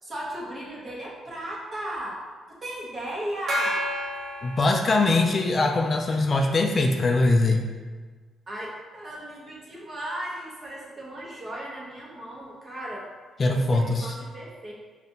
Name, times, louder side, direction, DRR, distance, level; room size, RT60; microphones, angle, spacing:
voice 1, 0.0-2.2 2.5-3.8 8.5-13.1 13.5-14.7, right 1 dB, 30° right, -4 dB, 1.1 m, -36 dB
Gong, 3.5-5.5, equal, 55° right, 0.7 m, -31 dB
voice 2, 4.4-7.6 13.4-14.1, left 2 dB, 40° left, 3 dB, 0.3 m, -22 dB
5.2 x 2.4 x 2.7 m, 1.4 s
cardioid pair, 90°, 0 cm